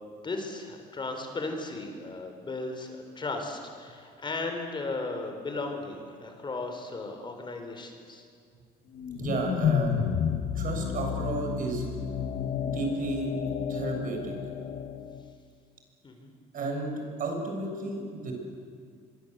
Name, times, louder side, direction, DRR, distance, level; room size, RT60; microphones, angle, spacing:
voice 1, 0.2-8.2 16.0-16.3, left 3 dB, 30° left, 4 dB, 4.4 m, -36 dB
sound 1, 9.0-15.3, left 8 dB, 55° left, 1.6 m, -31 dB
voice 2, 9.1-9.9 10.5-11.9 12.6-13.3 13.7-14.3 16.5-18.3, right 2 dB, 55° right, 2 dB, 6.9 m, -32 dB
25.5 x 23.0 x 8.2 m, 2.2 s
cardioid pair, 110°, 17 cm